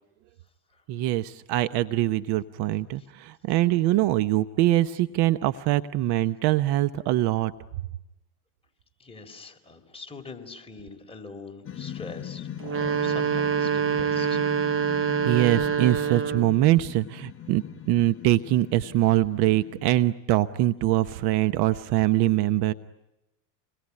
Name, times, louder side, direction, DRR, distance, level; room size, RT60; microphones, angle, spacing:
voice 1, 0.9-7.5 15.2-22.7, right 15 dB, 55° right, 13 dB, 1.0 m, -23 dB
voice 2, 9.0-14.4, left 3 dB, 10° left, 2 dB, 4.1 m, -43 dB
sound 1, 11.6-20.1, left 10 dB, 25° left, 1.1 m, -40 dB
sound 2, 12.6-16.6, right 7 dB, 25° right, 0.9 m, -25 dB
28.0 x 21.5 x 9.9 m, 0.93 s
supercardioid pair, 105°, 47 cm